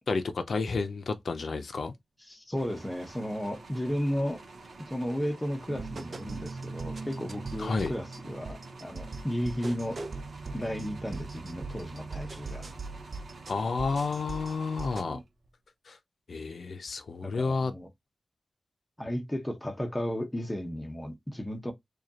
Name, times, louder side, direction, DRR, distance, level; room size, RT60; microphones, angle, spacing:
voice 1, 0.1-1.9 7.6-7.9 13.5-15.2 15.9-16.0 16.3-17.7, left 4 dB, 70° left, 0.5 m, -31 dB
voice 2, 2.3-4.4 4.8-10.0 10.5-12.7 17.2-17.9 19.0-21.7, equal, 10° left, 0.8 m, -34 dB
sound 1, 2.5-15.5, right 3 dB, 70° right, 0.9 m, -49 dB
sound 2, 5.7-15.2, right 3 dB, 50° right, 0.4 m, -40 dB
4.8 x 2.3 x 2.8 m
wide cardioid pair, 130°, 0 cm